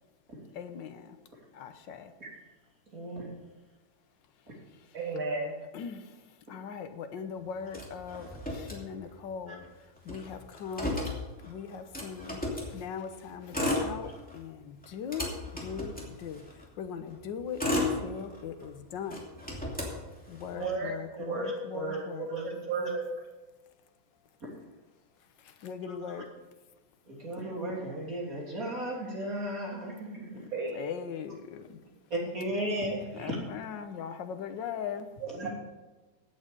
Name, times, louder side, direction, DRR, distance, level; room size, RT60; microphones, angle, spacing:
voice 1, 0.5-1.2 1.5-2.1 5.7-6.1 6.5-9.6 10.0-11.0 11.4-16.4 16.8-19.2 20.3-22.3 25.4-26.3 30.4-31.8 33.1-35.1, left 7 dB, 65° left, 8 dB, 1.6 m, -40 dB
voice 2, 2.9-3.4 9.5-9.6 15.2-15.3 20.5-20.7 21.2-22.0 22.3-22.9 24.4-24.5 25.9-26.2 27.1-30.4 32.1-33.4 35.3-35.5, right 1 dB, 40° right, -3 dB, 3.6 m, -36 dB
voice 3, 4.9-5.6 20.6-20.9 21.2-23.1 30.5-30.8 35.2-35.5, right 4 dB, 75° right, 0 dB, 2.1 m, -34 dB
Motor vehicle (road), 7.7-9.3 9.6-9.7 10.0-12.7 13.4-14.4 14.8-16.6 17.2-18.6 19.1-20.6, left 1 dB, 5° left, 2.6 m, -34 dB
16.0 x 8.7 x 5.3 m, 1.1 s
omnidirectional pair, 2.2 m